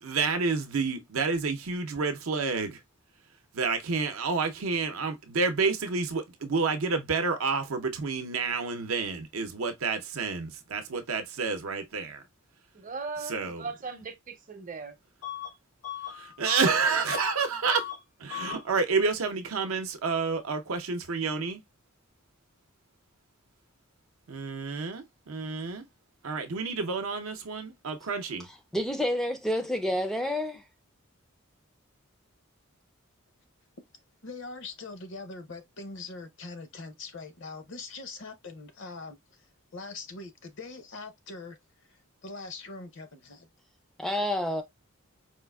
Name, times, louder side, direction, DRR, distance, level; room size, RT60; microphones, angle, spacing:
voice 1, 0.0-2.8 3.5-12.2 13.3-13.6 16.1-17.9 18.2-21.6 24.3-25.8 26.2-28.5, right 4 dB, 80° right, 0.6 m, -29 dB
voice 2, 12.7-15.0, right 4 dB, 40° right, 0.6 m, -38 dB
Bus / Alarm, 15.2-15.5 15.8-17.4 17.7-18.0 18.3-18.6, left 11 dB, 85° left, 1.0 m, -37 dB
voice 3, 28.7-30.6 44.0-44.6, left 1 dB, ahead, 0.3 m, -28 dB
voice 4, 34.2-39.5 39.7-43.5, left 3 dB, 60° left, 0.6 m, -42 dB
4.4 x 2.4 x 2.2 m
head